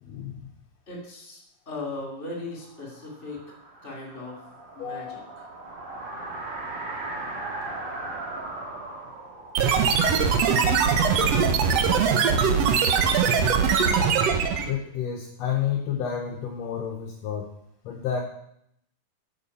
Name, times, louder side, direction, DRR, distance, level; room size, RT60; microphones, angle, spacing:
voice 1, 0.0-0.5 4.8-5.2 14.7-17.5 17.8-18.2, left 8 dB, 70° left, 1 dB, 1.6 m, -30 dB
voice 2, 0.9-1.4 1.7-3.4 3.8-4.4 4.8-5.5, left 2 dB, 20° left, -1 dB, 2.5 m, -37 dB
sound 1, 2.6-11.4, right 2 dB, 40° right, 1.8 m, -38 dB
sound 2, 9.5-14.7, right 6 dB, 75° right, 1.5 m, -21 dB
7.8 x 7.4 x 5.5 m, 0.75 s
omnidirectional pair, 4.0 m